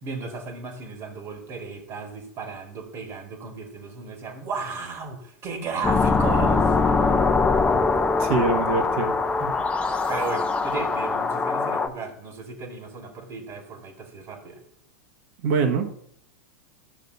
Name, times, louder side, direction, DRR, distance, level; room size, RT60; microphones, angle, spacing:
voice 1, 0.0-6.7 9.4-14.6, right 4 dB, 40° right, 3 dB, 1.8 m, -35 dB
sound 1, 5.8-11.9, left 4 dB, 15° left, 0.8 m, -22 dB
voice 2, 8.2-9.1 15.4-15.9, right 4 dB, 55° right, 4 dB, 1.4 m, -23 dB
12.5 x 6.6 x 2.7 m, 0.63 s
hypercardioid pair, 95°, 8 cm